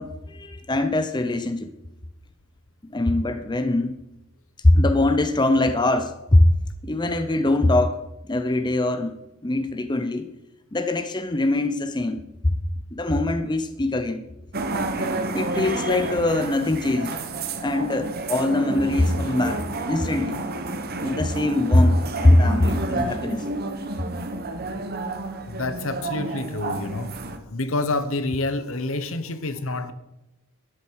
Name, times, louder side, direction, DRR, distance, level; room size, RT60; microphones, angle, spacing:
voice 1, 0.0-1.7 2.9-4.0 4.6-6.5 6.8-8.0 8.3-9.2 9.4-10.3 10.7-12.6 12.9-14.2 15.3-17.2 17.6-20.4 21.0-23.5, left 1 dB, 20° left, 8 dB, 0.6 m, -22 dB
sound 1, 14.5-27.4, right 2 dB, 45° right, 1.1 m, -30 dB
voice 2, 25.5-27.2 27.5-29.9, left 2 dB, 65° left, 11 dB, 1.1 m, -28 dB
12.5 x 10.5 x 4.7 m, 0.92 s
head